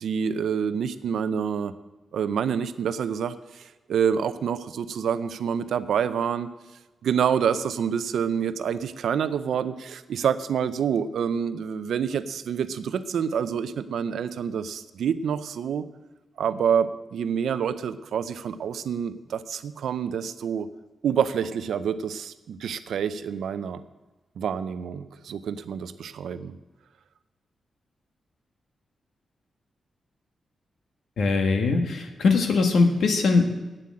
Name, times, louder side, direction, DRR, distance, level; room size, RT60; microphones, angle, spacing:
voice 1, 0.0-1.7 2.1-3.6 3.9-6.5 7.0-15.8 16.4-20.7 21.0-23.8 24.4-26.6, right 7 dB, 85° right, 13 dB, 0.6 m, -27 dB
voice 2, 31.2-33.5, left 4 dB, 65° left, 5 dB, 1.4 m, -21 dB
9.0 x 7.6 x 8.5 m, 1.2 s
wide cardioid pair, 170°, 0 cm